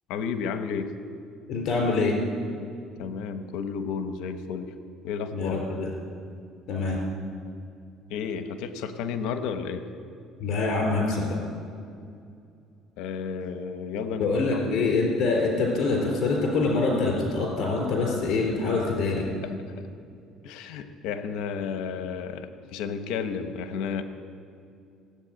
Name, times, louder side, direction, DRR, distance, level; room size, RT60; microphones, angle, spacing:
voice 1, 0.1-0.9 3.0-4.7 5.0-5.6 8.1-9.8 13.0-15.0 19.4-19.5 20.4-24.0, left 6 dB, 80° left, 9 dB, 1.0 m, -32 dB
voice 2, 1.5-2.1 5.3-5.9 6.7-7.0 10.4-11.4 14.2-19.3, left 3 dB, 60° left, 0 dB, 3.9 m, -25 dB
16.5 x 8.4 x 8.8 m, 2.5 s
cardioid pair, 120°, 0 cm